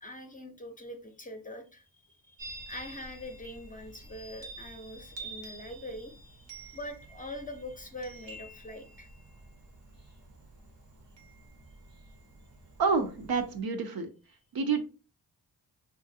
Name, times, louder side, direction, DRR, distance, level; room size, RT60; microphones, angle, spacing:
voice 1, 0.0-1.9 2.2-9.1, left 1 dB, 20° left, 5 dB, 0.6 m, -43 dB
Chime, 2.4-13.6, right 2 dB, 80° right, 1.0 m, -49 dB
voice 2, 12.8-14.1 14.5-14.8, right 5 dB, 55° right, 7 dB, 0.6 m, -28 dB
3.1 x 2.5 x 2.7 m, 0.34 s
cardioid pair, 55°, 43 cm